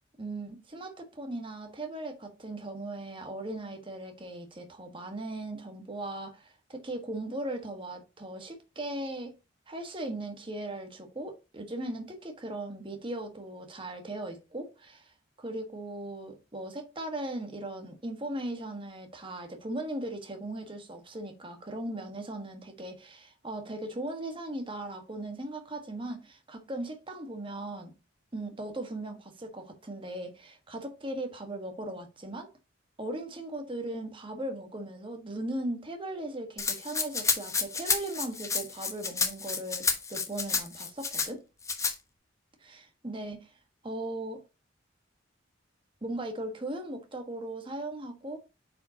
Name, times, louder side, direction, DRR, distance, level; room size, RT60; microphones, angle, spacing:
voice 1, 0.2-9.3 9.7-15.1 15.4-27.9 28.3-32.5 33.0-41.4 42.7-43.5 43.8-44.4 46.0-48.4, right 1 dB, 25° right, 1.5 m, -38 dB
Rattle (instrument), 36.6-41.3 41.6-41.9, left 5 dB, 15° left, 1.0 m, -30 dB
8.5 x 5.1 x 2.8 m
head